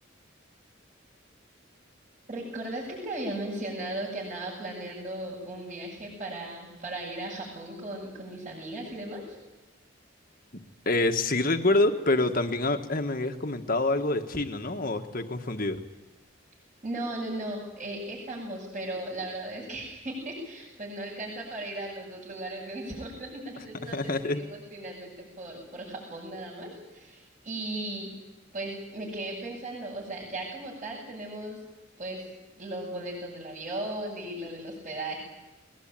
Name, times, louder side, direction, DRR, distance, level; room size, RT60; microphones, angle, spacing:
voice 1, 2.3-9.3 16.8-24.0 24.2-28.1 28.5-31.6 32.0-32.2 32.6-35.2, right 1 dB, 40° right, -7 dB, 8.0 m, -37 dB
voice 2, 10.8-15.8 23.9-24.4, left 2 dB, 45° left, 6 dB, 1.6 m, -26 dB
21.5 x 21.0 x 9.1 m, 1.1 s
head